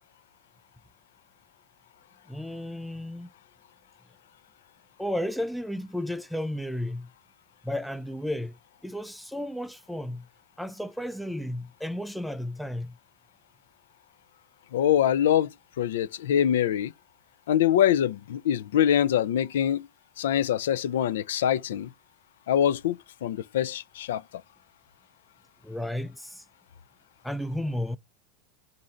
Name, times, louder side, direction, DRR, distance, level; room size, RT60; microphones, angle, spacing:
voice 1, 2.3-3.3 5.0-7.1 7.6-8.6 8.8-10.3 10.6-13.0 25.6-26.4 27.2-28.0, left 1 dB, ahead, 0.3 m, -33 dB
voice 2, 14.7-15.5 15.8-16.9 17.5-19.9 20.2-21.9 22.5-23.0 23.2-24.2, left 10 dB, 85° left, 0.3 m, -24 dB
3.7 x 2.6 x 4.2 m
supercardioid pair, 120°, 0 cm